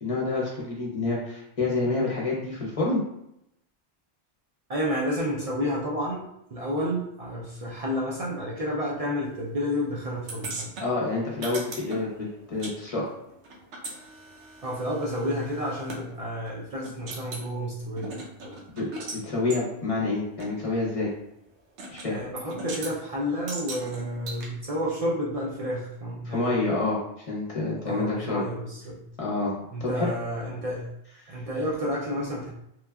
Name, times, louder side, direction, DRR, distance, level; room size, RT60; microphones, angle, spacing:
voice 1, 0.0-3.0 10.8-13.1 18.8-18.9 19.1-21.1 21.9-22.2 26.3-27.0 27.3-28.4 29.2-29.5 29.8-30.1, left 3 dB, 40° left, -4 dB, 0.6 m, -28 dB
voice 2, 4.7-10.8 14.6-18.6 22.1-26.6 27.8-29.1 29.7-30.9 31.3-32.5, equal, 65° right, -5 dB, 0.3 m, -30 dB
sound 1, 10.3-12.8 13.0-16.0 16.5-16.6 16.8-17.5 18.0-19.2 19.5-19.6 20.4-20.5 21.8-22.1 22.4-22.9 23.5-24.5, right 2 dB, 85° right, 0.9 m, -38 dB
3.1 x 2.2 x 2.2 m, 0.81 s
omnidirectional pair, 1.1 m